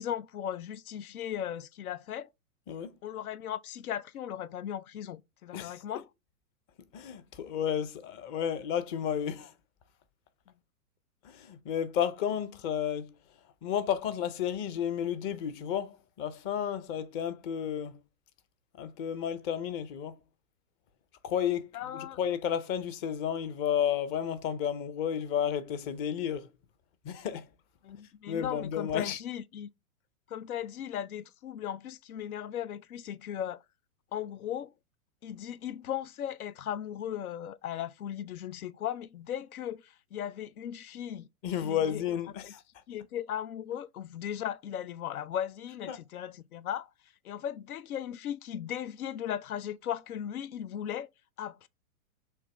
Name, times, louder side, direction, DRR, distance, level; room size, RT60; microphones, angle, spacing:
voice 1, 0.0-2.3 3.0-6.1 21.7-22.2 27.8-29.7 30.3-33.6 34.1-34.7 35.2-41.3 41.6-42.0 42.4-42.5 42.9-46.9 47.2-51.1 51.4-51.7, left 10 dB, 90° left, 0.5 m, -37 dB
voice 2, 6.9-9.5 11.2-13.1 13.6-18.0 18.7-20.2 21.2-26.5 27.0-27.5 28.3-29.2 41.4-42.6 45.9-46.0, left 9 dB, 25° left, 0.5 m, -32 dB
6.5 x 2.6 x 3.2 m
hypercardioid pair, 125°, 42 cm